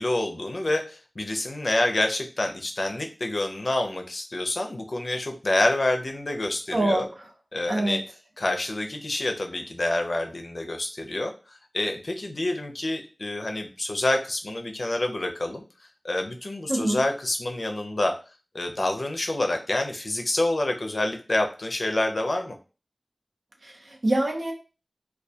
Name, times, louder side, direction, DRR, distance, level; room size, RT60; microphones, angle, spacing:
voice 1, 0.0-7.1 7.5-8.0 8.4-15.6 16.0-18.1 18.5-22.6, left 1 dB, 70° left, 5 dB, 0.4 m, -27 dB
voice 2, 6.7-7.1 7.7-8.0 16.7-17.0 23.6-24.5, right 1 dB, 80° right, 0 dB, 0.6 m, -25 dB
2.2 x 2.2 x 2.6 m, 0.33 s
wide cardioid pair, 50°, 0 cm